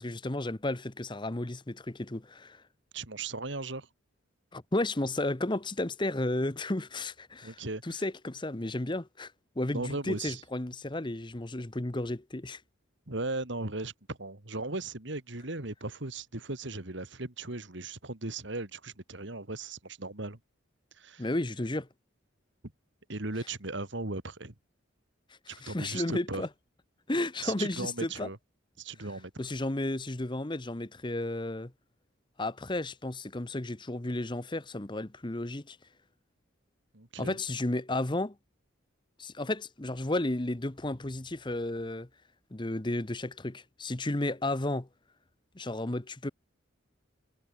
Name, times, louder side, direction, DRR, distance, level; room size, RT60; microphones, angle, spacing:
voice 1, 0.0-2.6 4.5-12.6 21.2-21.9 25.5-26.5 27.1-28.3 29.4-31.7 32.4-35.8 37.2-38.3 39.2-42.1 42.5-44.9 45.5-46.3, left 2 dB, 25° left, 1.0 m, -33 dB
voice 2, 2.9-3.9 7.4-8.0 9.7-10.4 13.1-20.4 21.0-21.2 23.1-24.5 25.5-26.4 27.4-28.4 28.8-29.3 36.9-37.4, right 2 dB, 60° right, 2.3 m, -37 dB
head